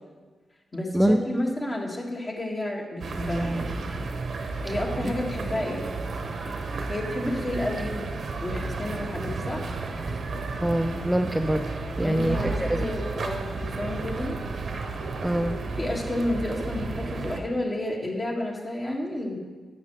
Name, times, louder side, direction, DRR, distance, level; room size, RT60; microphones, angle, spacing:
voice 1, 0.7-3.7 4.6-5.9 6.9-8.0 8.4-9.7 12.0-14.4 15.8-19.4, left 1 dB, 40° left, -2 dB, 2.0 m, -30 dB
sound 1, 3.0-17.4, right 3 dB, 70° right, 0.8 m, -32 dB
voice 2, 10.6-11.6 12.0-12.9 15.2-15.6, right 1 dB, 10° right, 5 dB, 0.5 m, -24 dB
9.7 x 7.6 x 3.3 m, 1.4 s
supercardioid pair, 50°, 0 cm